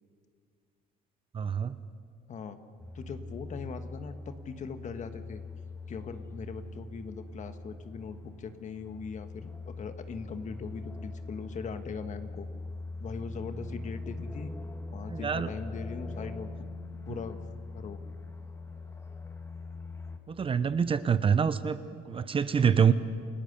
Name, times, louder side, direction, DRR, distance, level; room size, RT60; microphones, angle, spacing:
voice 1, 1.3-1.7 15.1-15.5 17.1-17.2 20.3-22.9, right 7 dB, 30° right, 13 dB, 0.7 m, -26 dB
sound 1, 2.8-20.2, left 3 dB, 15° left, 1.9 m, -42 dB
voice 2, 2.9-5.4 5.9-12.5 13.0-14.5 14.9-16.5 17.1-17.4 17.7-18.0, left 5 dB, 45° left, 8 dB, 1.5 m, -40 dB
29.0 x 17.0 x 6.7 m, 2.2 s
cardioid pair, 110°, 17 cm